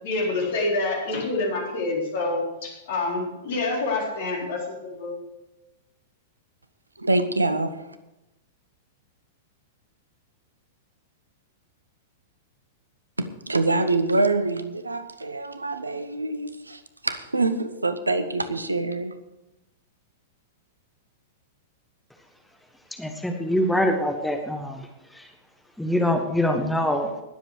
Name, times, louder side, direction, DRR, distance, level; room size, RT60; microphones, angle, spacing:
voice 1, 0.0-5.1, left 2 dB, 55° left, -1 dB, 4.1 m, -27 dB
voice 2, 7.0-7.8 13.2-19.2, right 2 dB, 80° right, 12 dB, 0.9 m, -25 dB
voice 3, 23.0-24.9 25.1-25.2 25.8-27.2, left 1 dB, 5° left, 3 dB, 1.4 m, -24 dB
20.0 x 7.7 x 4.8 m, 0.96 s
figure-of-eight pair, 100°, 0 cm